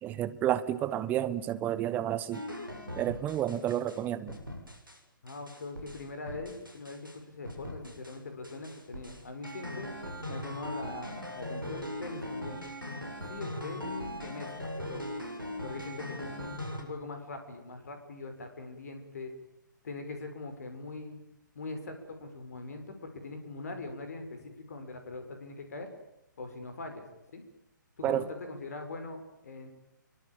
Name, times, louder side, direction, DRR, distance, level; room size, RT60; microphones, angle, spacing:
voice 1, 0.0-2.4 3.0-4.4 28.0-28.2, right 12 dB, 15° right, 14 dB, 1.3 m, -30 dB
sound 1, 2.3-4.0 4.3-5.0 5.3-7.2 7.4-8.2 8.4-16.8, equal, 85° right, 7.2 m, -40 dB
voice 2, 5.2-9.9 10.3-12.6 13.2-15.1 15.6-19.3 19.8-21.2 21.5-25.9 26.4-27.1 27.3-27.4 28.0-29.7, left 3 dB, 50° left, 6 dB, 5.9 m, -42 dB
27.0 x 24.0 x 8.9 m, 0.84 s
figure-of-eight pair, 130°, 11 cm